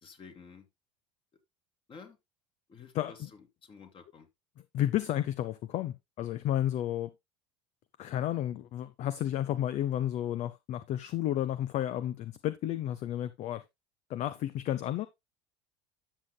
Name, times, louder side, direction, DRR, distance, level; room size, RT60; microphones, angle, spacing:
voice 1, 0.0-0.7 1.9-2.2 2.7-4.3, left 5 dB, 35° left, 2.5 m, -51 dB
voice 2, 4.7-7.1 8.0-13.6 14.1-15.1, left 12 dB, 50° left, 0.6 m, -32 dB
13.0 x 6.7 x 2.2 m
hypercardioid pair, 85°, 15 cm